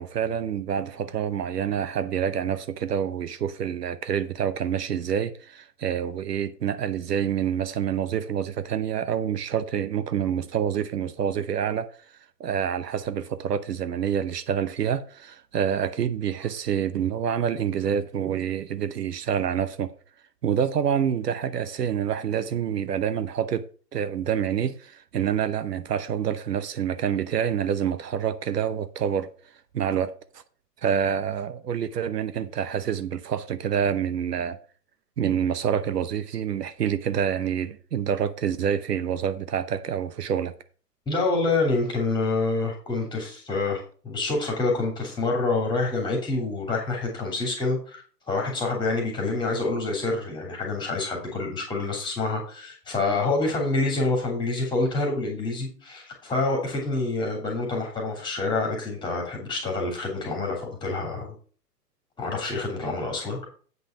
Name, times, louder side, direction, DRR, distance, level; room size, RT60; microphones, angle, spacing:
voice 1, 0.0-11.9 12.4-19.9 20.4-23.6 23.9-29.3 29.7-30.4 30.8-34.6 35.2-40.5, right 8 dB, 70° right, 0.8 m, -27 dB
voice 2, 41.1-43.8 44.0-61.3 62.2-63.5, left 3 dB, 10° left, 2.8 m, -27 dB
8.2 x 5.4 x 5.7 m
hypercardioid pair, 130°, 49 cm